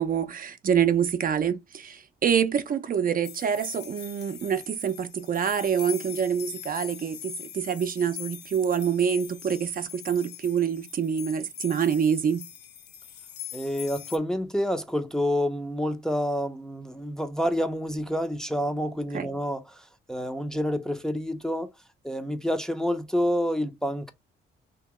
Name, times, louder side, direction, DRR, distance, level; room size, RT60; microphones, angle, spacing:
voice 1, 0.0-12.4 19.1-19.3, right 7 dB, 45° right, 0.6 m, -26 dB
sound 1, 3.2-14.2, left 10 dB, 60° left, 0.6 m, -42 dB
voice 2, 13.5-21.7 22.0-24.1, equal, 5° left, 0.6 m, -28 dB
2.9 x 2.8 x 3.5 m
cardioid pair, 90°, 20 cm